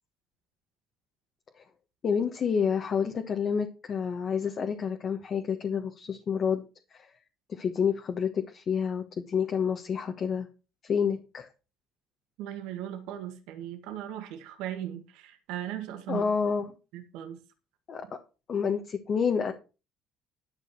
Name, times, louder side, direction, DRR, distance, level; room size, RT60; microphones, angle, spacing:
voice 1, 2.0-6.6 6.9-7.1 7.5-10.5 10.8-11.5 16.1-16.7 17.9-18.2 18.5-19.5, left 6 dB, 40° left, 4 dB, 1.4 m, -29 dB
voice 2, 12.4-16.3 16.9-17.4, right 11 dB, 90° right, 6 dB, 1.9 m, -38 dB
11.5 x 6.2 x 6.1 m, 0.32 s
cardioid pair, 135°, 0 cm